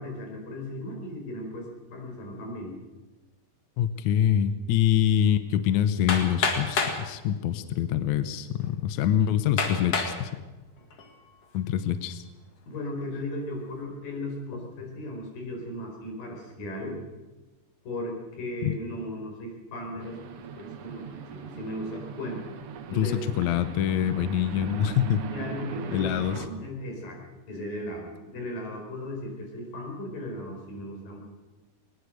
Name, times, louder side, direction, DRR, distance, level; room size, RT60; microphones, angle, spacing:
voice 1, 0.0-2.8 12.7-17.0 17.8-22.5 22.9-23.2 25.3-27.2 27.5-31.2, left 1 dB, 85° left, 1 dB, 6.2 m, -36 dB
voice 2, 3.8-10.3 11.5-12.2 18.6-18.7 22.9-25.2 25.9-26.4, left 10 dB, 70° left, 11 dB, 2.0 m, -25 dB
Hammer, 6.1-7.0 7.9-8.0 8.6-8.7 9.6-10.2 10.8-11.2, left 4 dB, 50° left, 2.8 m, -27 dB
sound 1, 20.0-26.5, right 8 dB, 60° right, 1.6 m, -40 dB
20.5 x 20.0 x 6.5 m, 1.1 s
omnidirectional pair, 3.8 m